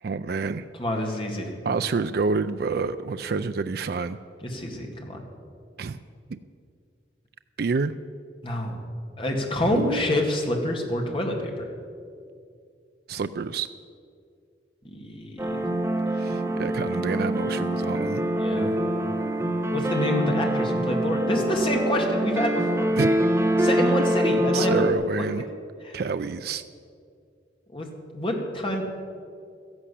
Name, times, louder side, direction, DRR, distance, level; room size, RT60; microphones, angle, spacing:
voice 1, 0.0-0.7 1.6-4.2 5.8-6.0 6.3-6.4 7.6-8.0 9.7-9.9 13.1-13.7 16.1-18.2 23.0-23.3 24.5-25.4 25.9-26.6, right 4 dB, 55° right, 10 dB, 0.4 m, -28 dB
voice 2, 0.7-1.5 4.4-5.2 8.4-8.8 9.2-11.7 14.8-15.6 18.4-18.7 19.7-22.9 23.6-24.9 25.8-26.0 27.7-27.9 28.1-28.8, left 1 dB, 30° left, 1 dB, 2.0 m, -27 dB
sound 1, 15.4-24.9, right 1 dB, 15° right, 1.2 m, -25 dB
13.5 x 11.0 x 8.3 m, 2.4 s
head